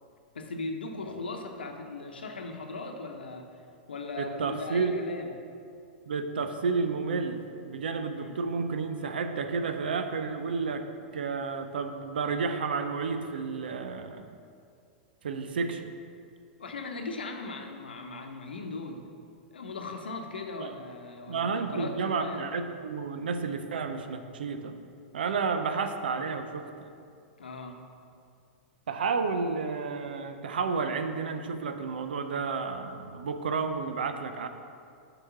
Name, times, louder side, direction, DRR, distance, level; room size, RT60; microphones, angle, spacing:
voice 1, 0.3-3.5 3.9-5.3 8.1-8.4 16.6-19.0 19.5-22.5 27.4-27.8, left 3 dB, 80° left, 4 dB, 0.9 m, -38 dB
voice 2, 4.2-4.9 6.1-10.9 11.1-14.3 15.2-15.9 20.6-20.7 21.3-24.8 25.1-26.6 28.9-34.5, right 5 dB, 75° right, 8 dB, 0.6 m, -31 dB
6.2 x 4.9 x 5.9 m, 2.4 s
hypercardioid pair, 105°, 5 cm